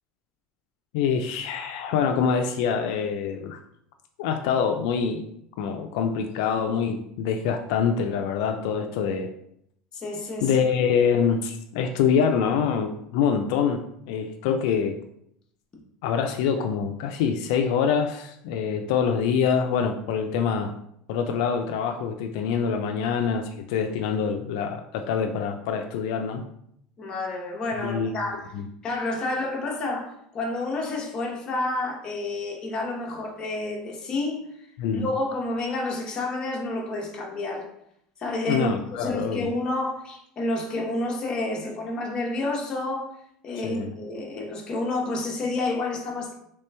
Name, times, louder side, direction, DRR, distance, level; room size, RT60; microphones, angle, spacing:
voice 1, 0.9-3.6 4.2-5.2 5.6-9.3 10.4-15.0 16.0-20.7 21.1-26.4 27.8-28.1 28.5-28.7 34.8-35.0 38.5-39.5 43.6-43.9, left 6 dB, 75° left, 5 dB, 0.3 m, -25 dB
voice 2, 9.9-10.5 27.0-28.5 28.8-34.4 34.9-37.7 38.2-43.1 43.4-46.3, left 2 dB, 25° left, 0 dB, 0.8 m, -29 dB
3.2 x 2.9 x 3.3 m, 0.74 s
cardioid pair, 150°, 3 cm